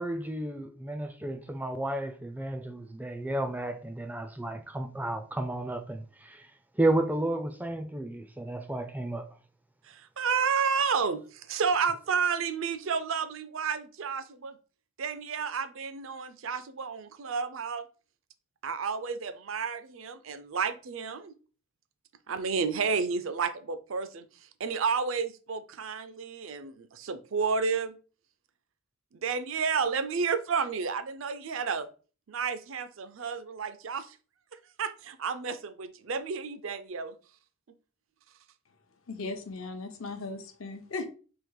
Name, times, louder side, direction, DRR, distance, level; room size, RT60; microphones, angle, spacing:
voice 1, 0.0-9.3, right 1 dB, 10° right, 0.3 m, -32 dB
voice 2, 9.8-14.6 15.0-17.9 18.6-21.3 22.3-28.0 29.1-31.9 32.3-34.2 34.8-37.2, right 5 dB, 70° right, 0.5 m, -31 dB
voice 3, 39.1-41.1, left 3 dB, 80° left, 0.8 m, -37 dB
3.7 x 2.9 x 4.6 m
head